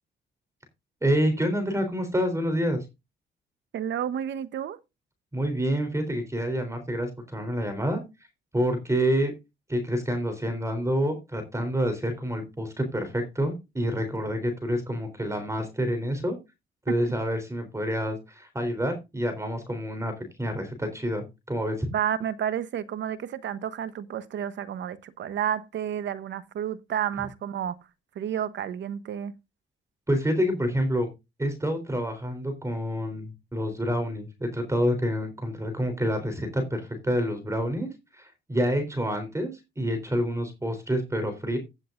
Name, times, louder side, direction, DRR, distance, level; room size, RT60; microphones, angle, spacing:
voice 1, 1.0-2.8 5.3-8.0 8.5-9.3 9.7-16.4 16.9-21.9 30.1-31.1 31.4-41.6, equal, 15° right, 3.7 m, -28 dB
voice 2, 3.7-4.8 16.9-17.0 21.9-27.8 28.1-29.3, right 9 dB, 65° right, 1.1 m, -31 dB
16.5 x 7.7 x 2.6 m
cardioid pair, 90°, 20 cm